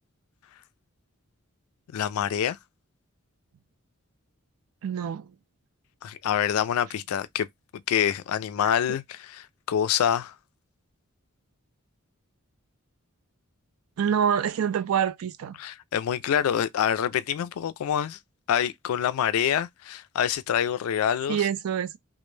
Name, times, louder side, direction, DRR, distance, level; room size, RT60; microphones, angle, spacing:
voice 1, 1.9-2.6 6.0-7.5 7.9-10.3 15.6-18.2 18.5-21.5, left 9 dB, 75° left, 0.3 m, -26 dB
voice 2, 4.8-5.3 8.6-8.7 14.0-15.6 21.3-22.0, right 8 dB, 75° right, 0.3 m, -26 dB
2.1 x 2.0 x 3.1 m
head